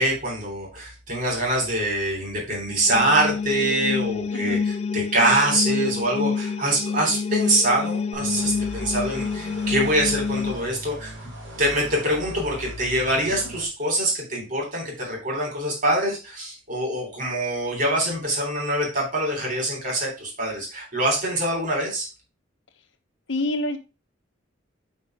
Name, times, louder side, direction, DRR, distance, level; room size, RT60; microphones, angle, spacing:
voice 1, 0.0-11.1 11.6-22.1, right 1 dB, 40° right, -1 dB, 3.5 m, -24 dB
sound 1, 2.7-10.5, left 5 dB, 30° left, 0.3 m, -28 dB
sound 2, 8.1-13.6, left 1 dB, 65° right, 3.3 m, -39 dB
voice 2, 23.3-23.8, left 1 dB, 70° left, 7 dB, 1.1 m, -27 dB
5.7 x 5.4 x 4.8 m, 0.30 s
head